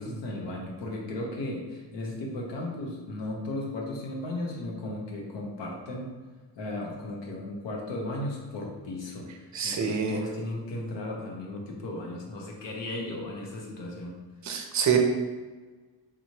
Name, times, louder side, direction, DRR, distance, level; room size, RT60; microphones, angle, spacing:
voice 1, 0.0-6.1 6.6-14.2, left 1 dB, 75° left, 0 dB, 0.9 m, -35 dB
voice 2, 9.5-10.2 14.4-15.0, right 7 dB, 40° right, 4 dB, 0.5 m, -26 dB
3.8 x 3.1 x 2.8 m, 1.3 s
wide cardioid pair, 145°, 44 cm